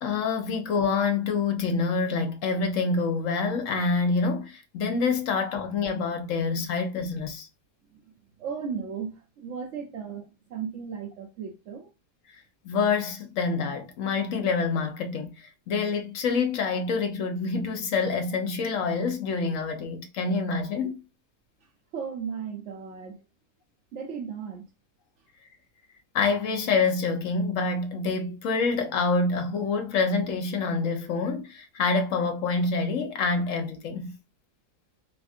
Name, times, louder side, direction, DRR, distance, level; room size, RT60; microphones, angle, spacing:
voice 1, 0.0-7.5 12.6-21.0 26.1-34.1, left 4 dB, 60° left, 0.9 m, -27 dB
voice 2, 8.4-11.9 21.6-23.2 23.9-24.7, right 6 dB, 75° right, 0.6 m, -36 dB
3.5 x 2.5 x 2.4 m
omnidirectional pair, 1.8 m